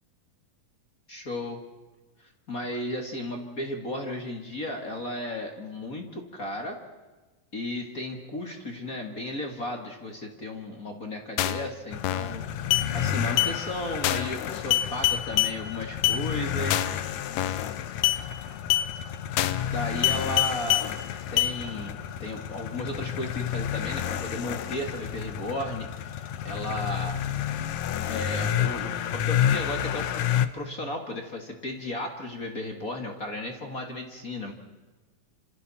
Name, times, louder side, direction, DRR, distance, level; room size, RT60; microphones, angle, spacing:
voice 1, 1.1-1.6 2.2-6.8 7.5-12.7 12.9-16.9 19.7-20.9 21.3-27.2 28.1-34.5, left 1 dB, 30° left, 3 dB, 1.7 m, -35 dB
sound 1, 11.4-11.7 12.0-12.4 12.7-12.9 13.4-13.5 14.0-14.4 14.7-15.5 16.0-16.2 16.7-17.0 17.4-17.7 18.0-18.2 18.7-18.9 19.4-19.7 20.0-20.9 21.4-21.5, left 14 dB, 85° left, 2.8 m, -24 dB
sound 2, 11.9-30.5, left 10 dB, 70° left, 1.8 m, -31 dB
28.0 x 27.0 x 4.3 m, 1.2 s
omnidirectional pair, 4.2 m